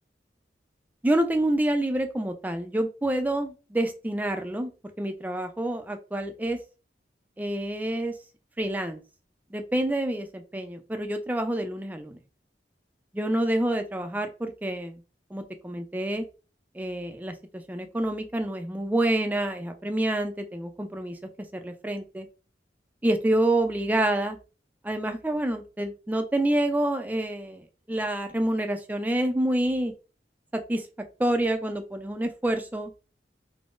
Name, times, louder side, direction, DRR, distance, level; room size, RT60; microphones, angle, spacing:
voice 1, 1.0-4.7 5.0-6.6 7.4-8.2 8.6-9.0 9.5-12.2 13.1-15.0 15.3-16.3 16.7-21.2 21.5-22.3 23.0-24.4 24.8-29.9 30.5-30.9 31.2-32.9, right 1 dB, 10° right, 6 dB, 0.3 m, -27 dB
3.5 x 2.0 x 2.4 m, 0.32 s
head